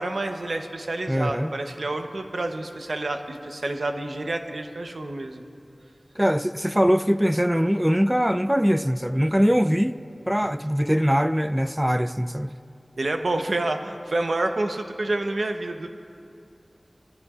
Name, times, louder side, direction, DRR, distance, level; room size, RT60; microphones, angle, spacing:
voice 1, 0.0-5.4 13.0-15.9, right 2 dB, 80° right, 0.8 m, -28 dB
voice 2, 1.1-1.5 6.2-10.0 10.3-12.5, equal, 10° right, 0.4 m, -22 dB
22.5 x 16.5 x 2.5 m
wide cardioid pair, 40°, 0 cm